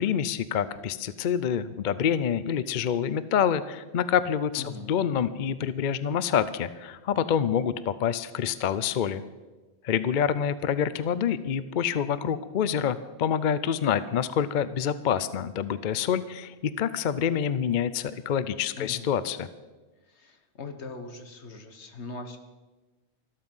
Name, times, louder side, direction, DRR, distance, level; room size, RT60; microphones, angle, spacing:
voice 1, 0.0-9.2 9.8-19.5, left 8 dB, 55° left, 15 dB, 0.7 m, -27 dB
voice 2, 4.6-4.9 18.8-19.1 20.0-22.4, left 3 dB, 80° left, 6 dB, 1.7 m, -40 dB
14.0 x 13.0 x 5.5 m, 1.2 s
omnidirectional pair, 1.1 m